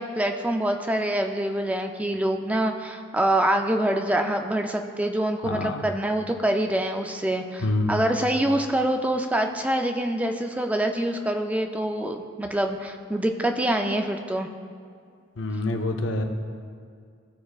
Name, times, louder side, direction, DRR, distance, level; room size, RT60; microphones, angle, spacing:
voice 1, 0.0-14.5, right 1 dB, 10° right, 5 dB, 0.3 m, -25 dB
voice 2, 5.4-5.8 7.6-8.1 15.4-16.2, left 2 dB, 85° left, 5 dB, 0.6 m, -26 dB
13.5 x 4.8 x 2.4 m, 2.2 s
head